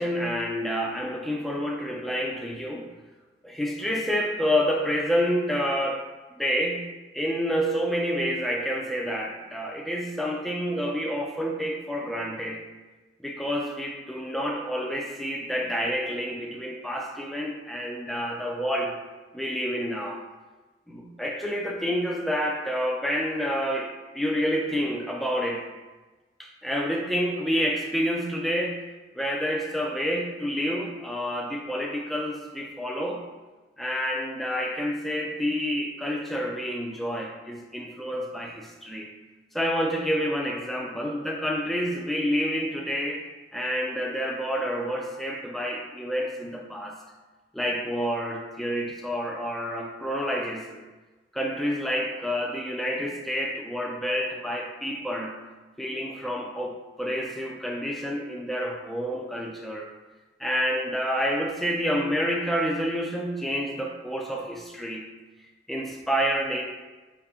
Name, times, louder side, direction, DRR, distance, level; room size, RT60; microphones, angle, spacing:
voice 1, 0.0-2.9 3.4-6.1 6.4-6.8 7.1-12.6 13.2-19.0 19.3-20.3 20.9-25.6 26.4-28.8 29.2-33.2 33.8-39.1 39.5-47.0 47.5-50.8 51.3-55.4 55.8-59.9 60.4-65.1 65.7-66.6, equal, ahead, 0 dB, 0.3 m, -28 dB
4.8 x 2.6 x 3.5 m, 1.2 s
head